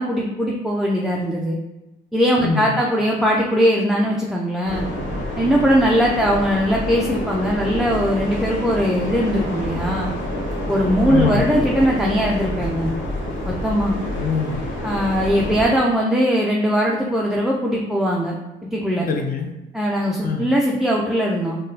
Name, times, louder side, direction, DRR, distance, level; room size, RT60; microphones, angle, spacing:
voice 1, 0.0-1.6 2.1-4.9 5.4-10.1 10.7-12.9 13.5-14.0 14.8-18.4 18.7-19.1 19.7-21.6, equal, ahead, -3 dB, 0.3 m, -20 dB
voice 2, 2.4-2.8 11.1-11.6 14.1-14.7 19.1-19.5 20.2-20.5, left 5 dB, 45° left, 4 dB, 0.5 m, -24 dB
sound 1, 4.6-15.7, left 1 dB, 85° left, 0.9 m, -27 dB
3.6 x 2.1 x 2.7 m, 1.0 s
cardioid pair, 90°, 20 cm